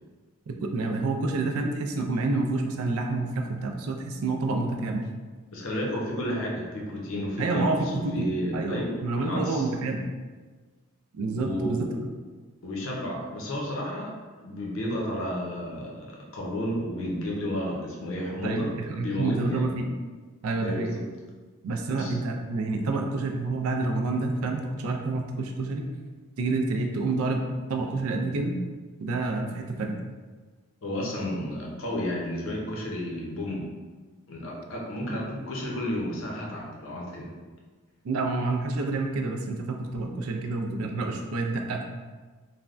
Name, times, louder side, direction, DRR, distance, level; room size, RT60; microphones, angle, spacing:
voice 1, 0.5-5.1 7.4-10.1 11.1-11.9 18.4-19.9 20.4-20.9 21.6-25.9 26.4-27.4 27.7-28.6 29.0-30.0 35.1-35.2 38.0-41.9, right 3 dB, 75° right, 3 dB, 0.4 m, -28 dB
voice 2, 5.5-9.6 11.4-12.0 12.6-19.7 20.6-21.0 21.9-22.2 30.8-33.7 34.3-37.3, left 1 dB, 60° left, -2 dB, 0.6 m, -32 dB
3.3 x 2.1 x 2.4 m, 1.4 s
head